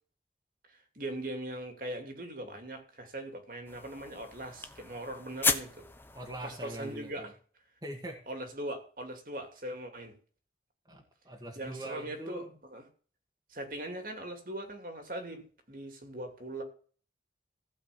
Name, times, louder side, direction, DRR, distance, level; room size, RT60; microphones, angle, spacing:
voice 1, 0.7-5.8 6.4-7.3 8.3-10.1 11.6-12.8 13.5-16.6, right 1 dB, 50° right, 2.6 m, -40 dB
sound 1, 3.7-7.2, left 4 dB, 10° left, 0.8 m, -35 dB
voice 2, 6.1-7.3 7.8-8.2 10.9-12.6, right 1 dB, 20° right, 1.8 m, -42 dB
15.5 x 5.4 x 8.4 m
head